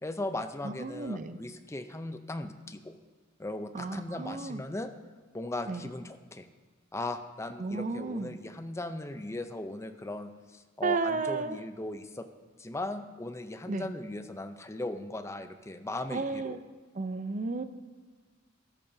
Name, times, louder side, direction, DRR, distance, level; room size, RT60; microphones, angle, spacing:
voice 1, 0.0-2.9 3.4-4.9 5.3-6.5 6.9-12.3 12.6-16.5, left 2 dB, 15° left, 8 dB, 0.5 m, -38 dB
voice 2, 0.6-1.4 3.7-4.6 5.7-5.9 7.6-8.3 10.8-11.6 13.7-13.9 16.1-16.6 16.9-17.6, right 3 dB, 40° right, 10 dB, 0.6 m, -33 dB
13.5 x 12.5 x 2.7 m, 1.4 s
head